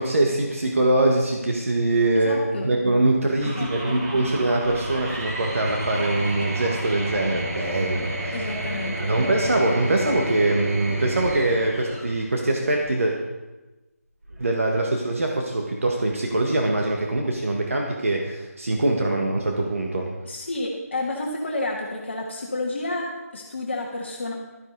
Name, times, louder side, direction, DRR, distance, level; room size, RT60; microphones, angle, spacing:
voice 1, 0.0-2.4 2.6-8.5 9.0-13.1 14.4-20.1, right 2 dB, 55° right, 0 dB, 1.6 m, -23 dB
voice 2, 2.2-2.7 3.4-4.2 8.3-9.1 20.2-24.3, left 2 dB, 45° left, -1 dB, 1.5 m, -30 dB
sound 1, 3.4-12.0, right 1 dB, 15° right, 1.0 m, -35 dB
sound 2, 4.6-13.0 14.2-14.9, right 1 dB, 80° right, 4.9 m, -33 dB
12.5 x 11.0 x 4.0 m, 1.1 s
figure-of-eight pair, 165°, 9 cm